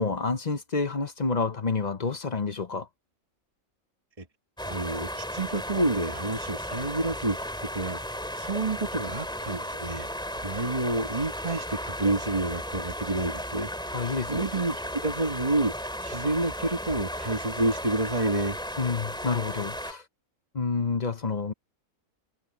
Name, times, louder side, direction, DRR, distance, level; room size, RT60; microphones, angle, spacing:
voice 1, 0.0-2.9 13.9-14.4 18.8-20.0 20.5-21.5, left 4 dB, 35° left, 0.8 m, -28 dB
sound 1, 4.6-19.9, equal, 5° left, 3.0 m, -35 dB
voice 2, 4.7-15.7 16.0-18.6, right 2 dB, 25° right, 1.9 m, -29 dB
omnidirectional pair, 1.4 m